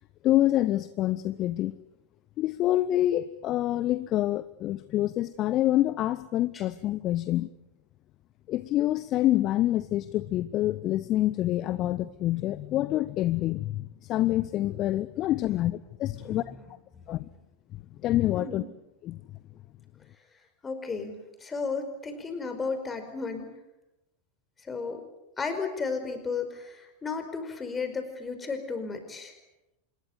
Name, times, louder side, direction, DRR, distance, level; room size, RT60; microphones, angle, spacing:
voice 1, 0.2-1.7 2.4-7.5 8.5-16.5 17.1-17.3 17.7-18.6 19.0-19.2, left 14 dB, 35° left, 16 dB, 0.8 m, -27 dB
voice 2, 16.1-16.6 16.9-17.2 18.3-18.7 20.6-23.5 24.6-25.0 25.4-29.3, left 4 dB, 15° left, 7 dB, 5.0 m, -34 dB
26.5 x 21.5 x 8.2 m, 0.92 s
figure-of-eight pair, 90°, 0 cm